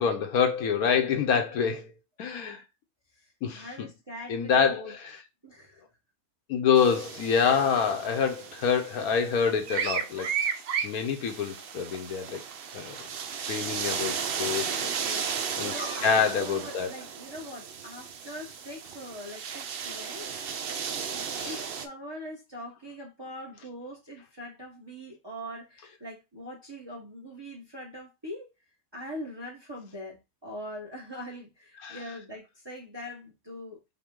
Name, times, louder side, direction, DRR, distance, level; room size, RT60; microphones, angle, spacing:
voice 1, 0.0-1.9 2.2-2.6 3.4-3.9 4.3-5.2 6.5-10.3 10.8-12.4 12.7-13.0 13.5-14.8 15.6-15.7 16.0-16.9 21.4-21.6 31.8-32.0, left 6 dB, 70° left, 1.2 m, -26 dB
voice 2, 3.2-5.0 5.4-5.8 13.9-28.5 28.9-33.8, equal, 20° right, 0.8 m, -43 dB
sound 1, 6.8-21.9, right 7 dB, 80° right, 0.5 m, -34 dB
5.8 x 2.3 x 3.6 m
omnidirectional pair, 1.7 m